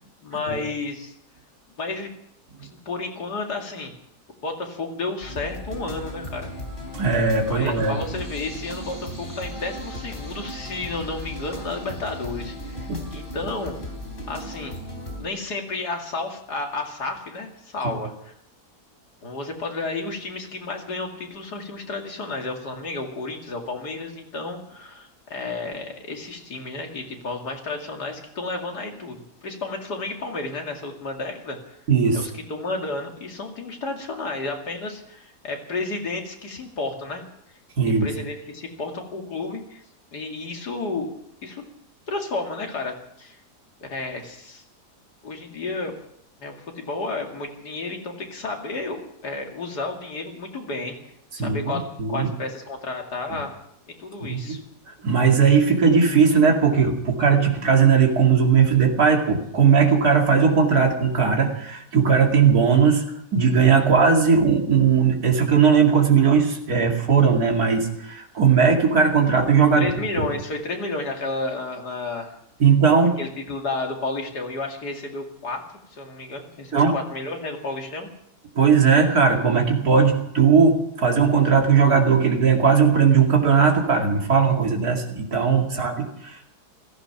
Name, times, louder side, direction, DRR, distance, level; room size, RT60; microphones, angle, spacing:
voice 1, 0.2-1.1 1.8-2.1 2.6-3.9 4.4-6.5 7.5-13.7 14.3-14.8 15.2-18.3 19.2-31.8 32.1-37.2 37.9-39.8 40.1-41.1 41.4-41.6 42.1-43.4 43.8-44.6 45.2-45.9 46.4-51.0 51.3-53.5 54.0-54.6 69.8-72.4 73.2-75.6 75.9-78.1 85.7-85.8, left 3 dB, 85° left, 2 dB, 2.9 m, -32 dB
sound 1, 5.2-15.2, left 1 dB, 35° left, 3.6 m, -36 dB
voice 2, 6.9-8.0 12.9-13.1 31.9-32.3 37.8-38.1 51.4-52.3 53.3-53.4 54.2-54.6 54.9-63.0 63.3-69.9 70.2-70.3 72.6-73.2 76.7-76.9 78.5-86.4, right 6 dB, 70° right, 1 dB, 2.9 m, -18 dB
16.0 x 15.0 x 5.9 m, 0.76 s
omnidirectional pair, 1.7 m